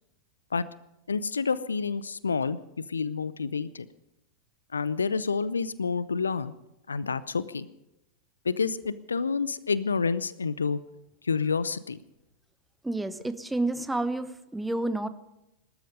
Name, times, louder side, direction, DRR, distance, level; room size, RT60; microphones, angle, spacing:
voice 1, 1.1-2.6 2.9-3.9 4.7-6.5 6.9-7.7 8.4-10.8 11.2-12.0, left 5 dB, 75° left, 18 dB, 0.6 m, -28 dB
voice 2, 12.8-15.1, right 2 dB, 5° right, 13 dB, 0.9 m, -30 dB
19.5 x 13.0 x 5.1 m, 0.89 s
figure-of-eight pair, 90°, 0 cm